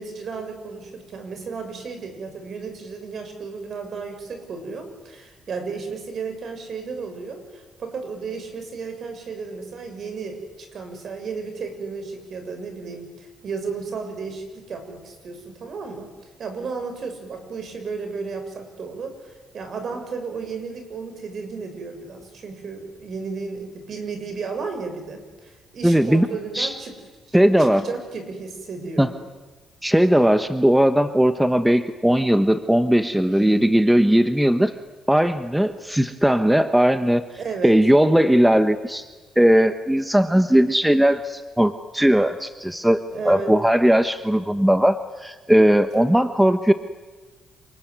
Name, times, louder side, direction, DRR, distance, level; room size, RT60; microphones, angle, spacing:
voice 1, 0.0-16.1 16.4-27.0 27.3-29.1 33.3-33.7 37.4-37.7 43.1-43.5 45.9-46.2, right 4 dB, 55° right, 6 dB, 6.7 m, -33 dB
voice 2, 25.8-26.3 26.5-26.7 27.3-27.8 29.0-29.1 29.8-34.7 35.1-37.2 37.6-39.1 39.4-46.7, equal, 5° right, 10 dB, 1.2 m, -18 dB
28.0 x 20.5 x 9.6 m, 1.3 s
cardioid pair, 90°, 0 cm